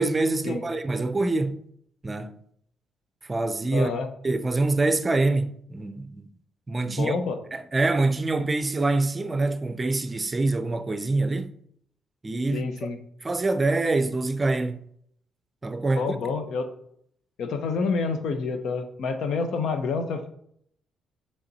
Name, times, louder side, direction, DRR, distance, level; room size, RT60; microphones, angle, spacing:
voice 1, 0.0-1.6 2.0-2.4 3.3-3.9 4.2-6.2 6.7-7.2 7.5-11.5 12.2-12.7 13.2-14.8 15.6-16.1, right 2 dB, 25° right, 0.5 m, -25 dB
voice 2, 3.7-4.1 7.0-7.4 12.5-13.0 15.9-16.7 17.4-20.3, left 4 dB, 70° left, 0.9 m, -28 dB
6.9 x 3.6 x 4.1 m
cardioid pair, 90°, 0 cm